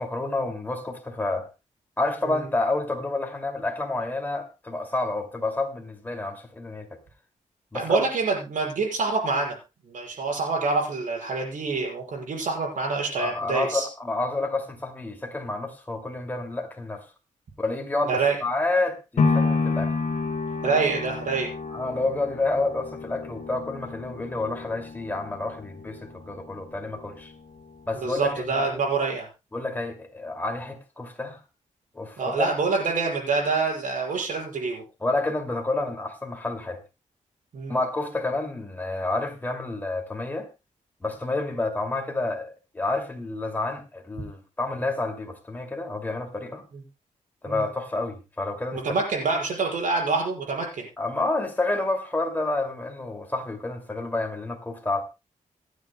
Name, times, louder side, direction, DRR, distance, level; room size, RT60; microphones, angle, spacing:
voice 1, 0.0-1.5 2.0-7.0 7.7-8.0 13.1-17.1 17.6-19.9 21.7-27.3 27.9-28.6 29.5-31.4 31.9-32.5 35.0-36.8 37.7-40.5 41.0-46.6 47.4-48.8 51.0-55.0, left 2 dB, 15° left, 2.4 m, -29 dB
voice 2, 7.7-9.6 9.9-13.9 18.0-18.4 20.6-21.5 28.0-29.3 32.2-34.8 37.5-37.8 47.5-47.6 48.7-50.9, right 4 dB, 75° right, 6.2 m, -26 dB
sound 1, 19.2-27.3 27.7-27.8, left 4 dB, 55° left, 2.3 m, -29 dB
26.5 x 9.4 x 2.2 m
wide cardioid pair, 155°, 14 cm